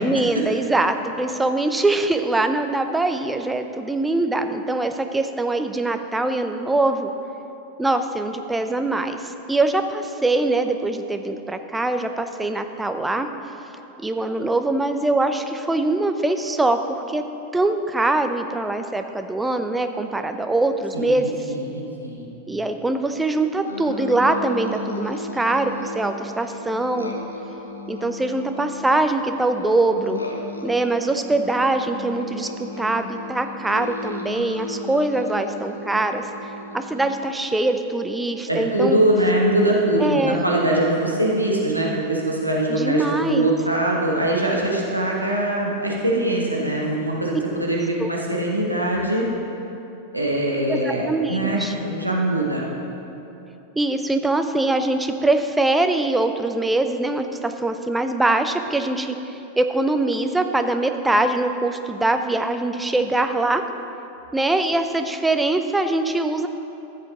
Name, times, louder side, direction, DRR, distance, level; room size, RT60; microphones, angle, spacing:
voice 1, 0.0-7.1 7.8-13.3 14.0-17.2 17.5-21.5 22.5-27.1 27.9-30.2 30.6-32.5 32.8-39.0 40.0-40.4 42.7-43.5 48.0-48.1 50.7-51.7 53.8-63.6 64.3-66.5, right 2 dB, 10° right, 7 dB, 0.6 m, -23 dB
voice 2, 20.9-22.3 38.5-49.2 50.1-52.6, right 1 dB, 90° right, -3 dB, 1.5 m, -22 dB
sound 1, 23.7-37.0, left 2 dB, 80° left, 0.9 m, -35 dB
14.0 x 7.5 x 3.8 m, 2.9 s
figure-of-eight pair, 90°, 0 cm